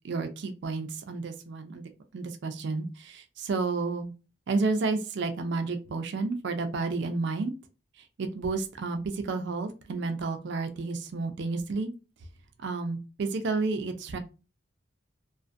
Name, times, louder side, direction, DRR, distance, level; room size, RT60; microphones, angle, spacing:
voice 1, 0.0-4.1 4.5-7.5 8.0-11.9 12.6-14.2, right 3 dB, 60° right, 7 dB, 0.4 m, -31 dB
2.4 x 2.4 x 2.4 m, 0.32 s
head